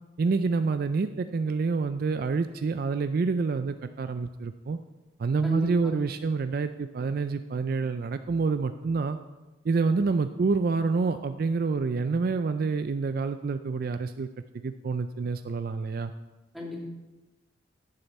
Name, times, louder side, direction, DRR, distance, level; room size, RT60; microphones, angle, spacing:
voice 1, 0.2-4.8 5.2-9.2 9.6-14.3 14.5-16.1, right 4 dB, 50° right, 10 dB, 0.4 m, -27 dB
voice 2, 5.4-6.0 16.5-16.8, equal, ahead, -4 dB, 2.3 m, -34 dB
15.5 x 6.7 x 4.2 m, 1.1 s
head